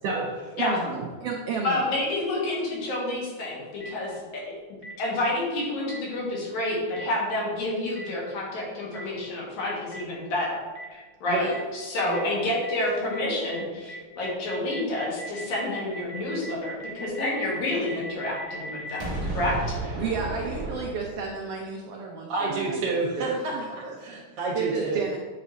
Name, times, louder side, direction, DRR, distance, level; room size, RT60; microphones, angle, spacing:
voice 1, 0.0-0.5 22.3-25.0, right 3 dB, 65° right, -2 dB, 1.7 m, -29 dB
voice 2, 0.6-1.9 11.3-11.6 12.1-12.4 20.0-22.8 23.2-23.9 24.5-25.2, right 5 dB, 85° right, 0 dB, 1.3 m, -32 dB
voice 3, 1.6-4.1 4.5-4.6 5.0-10.6 10.9-19.8, left 1 dB, 75° left, -4 dB, 3.0 m, -29 dB
Boom, 3.8-3.9 4.8-4.9 5.9-6.0 6.9-7.0 7.9-8.0 8.9-9.0 9.9-10.0 10.7-10.8 11.5-11.6 12.1-12.2 12.6-12.7 13.1-13.2 13.5-13.6 13.9-21.4, right 1 dB, 30° right, 1.0 m, -35 dB
8.8 x 3.2 x 3.9 m, 1.4 s
omnidirectional pair, 3.4 m